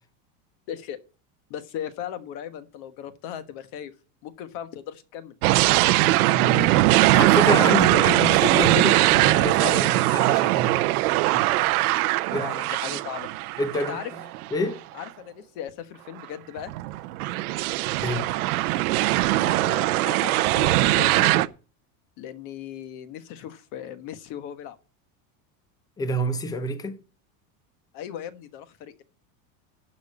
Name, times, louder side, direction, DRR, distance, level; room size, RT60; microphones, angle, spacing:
voice 1, 0.7-1.0 1.5-3.9 4.2-5.3 12.4-13.3 13.7-14.1 14.9-16.7 19.3-21.5 22.2-24.8 27.9-29.0, left 10 dB, 45° left, 1.3 m, -37 dB
sound 1, 5.4-14.5 15.0-15.1 16.6-21.5, right 17 dB, 80° right, 0.8 m, -21 dB
voice 2, 6.3-10.7 11.3-11.8 12.3-12.7 13.6-14.0 14.5-14.8 18.0-18.3 26.0-27.0, left 1 dB, 10° left, 0.6 m, -28 dB
11.0 x 5.4 x 8.4 m
supercardioid pair, 170°, 44 cm